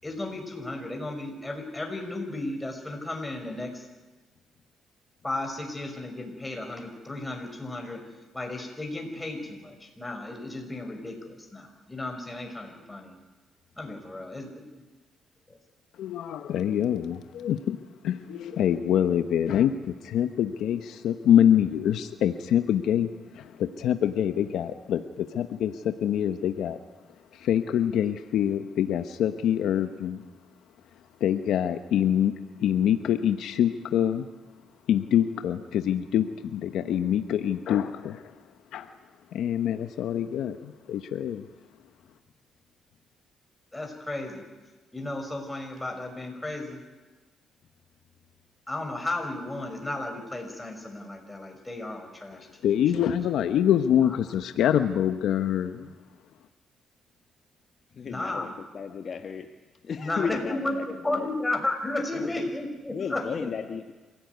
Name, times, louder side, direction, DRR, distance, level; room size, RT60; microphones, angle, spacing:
voice 1, 0.0-3.8 5.2-8.0 8.3-13.2 13.8-14.5 43.7-44.5 44.9-46.8 48.7-52.9 58.0-58.5 60.0-63.5, left 2 dB, 15° left, 3 dB, 5.9 m, -34 dB
voice 2, 16.0-17.8 18.0-23.1 23.3-26.8 27.3-30.2 31.2-32.3 32.6-34.3 34.9-38.2 38.7-38.9 39.3-41.5 52.6-55.9, left 10 dB, 80° left, 8 dB, 1.1 m, -25 dB
voice 3, 57.9-59.5 59.8-61.3 62.1-62.3 62.9-63.9, left 6 dB, 50° left, 5 dB, 1.5 m, -34 dB
26.5 x 17.0 x 9.5 m, 1.2 s
cardioid pair, 90°, 0 cm